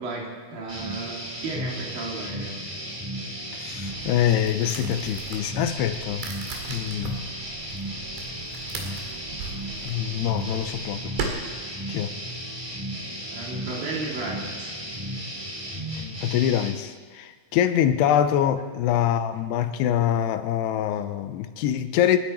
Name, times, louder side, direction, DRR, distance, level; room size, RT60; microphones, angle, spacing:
voice 1, 0.0-2.6 13.3-14.7, right 3 dB, 60° right, -2 dB, 4.1 m, -34 dB
sound 1, 0.7-16.7, equal, 15° right, 1.1 m, -34 dB
voice 2, 3.5-6.3 6.7-7.2 9.9-11.3 11.9-12.1 15.9-22.2, left 10 dB, 85° left, 10 dB, 2.8 m, -24 dB
sound 2, 3.8-11.3, right 6 dB, 85° right, 4.2 m, -38 dB
29.0 x 11.0 x 4.4 m, 1.5 s
omnidirectional pair, 4.8 m